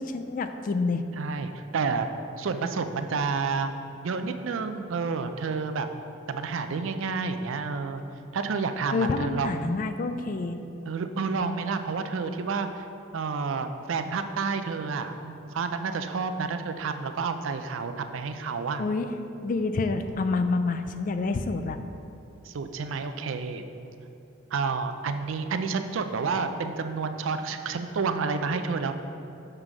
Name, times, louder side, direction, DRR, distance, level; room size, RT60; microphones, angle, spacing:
voice 1, 0.0-1.0 8.9-10.6 18.8-19.1 19.4-21.8, left 3 dB, 40° left, 8 dB, 0.3 m, -28 dB
voice 2, 1.2-2.1 2.4-5.9 6.3-8.0 8.3-9.7 10.9-12.9 13.1-18.9 22.4-23.6 24.5-28.9, right 4 dB, 70° right, 8 dB, 0.4 m, -30 dB
6.6 x 3.8 x 6.0 m, 2.7 s
head